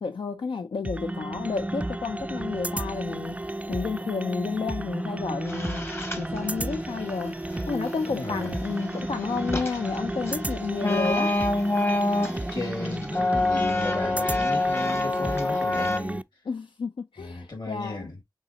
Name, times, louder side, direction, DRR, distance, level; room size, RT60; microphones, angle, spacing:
voice 1, 0.0-3.4 3.7-5.9 6.2-7.4 7.7-11.4 16.5-18.2, left 5 dB, 85° left, 0.4 m, -31 dB
sound 1, 0.8-16.2, right 1 dB, 15° right, 0.3 m, -33 dB
sound 2, 5.4-7.1 7.4-16.0, left 2 dB, 30° left, 0.9 m, -27 dB
voice 2, 8.0-8.5 12.5-16.2 17.2-18.2, left 2 dB, 60° left, 2.1 m, -35 dB
5.4 x 3.2 x 2.8 m
cardioid pair, 45°, 8 cm